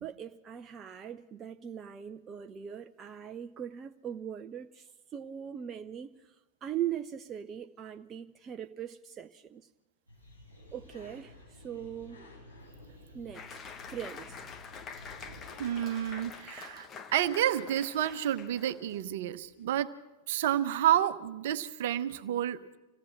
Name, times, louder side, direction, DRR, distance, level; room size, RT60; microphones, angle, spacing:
voice 1, 0.0-6.3 6.6-9.7 10.7-12.3 13.1-13.6 13.9-14.4, right 9 dB, 25° right, 0.7 m, -40 dB
sound 1, 10.1-16.3, left 1 dB, 90° left, 7.6 m, -52 dB
Applause, 13.3-19.1, left 6 dB, 25° left, 1.4 m, -46 dB
voice 2, 15.6-19.9 20.3-22.8, right 11 dB, 55° right, 1.0 m, -30 dB
26.0 x 17.5 x 6.0 m
figure-of-eight pair, 90°, 0 cm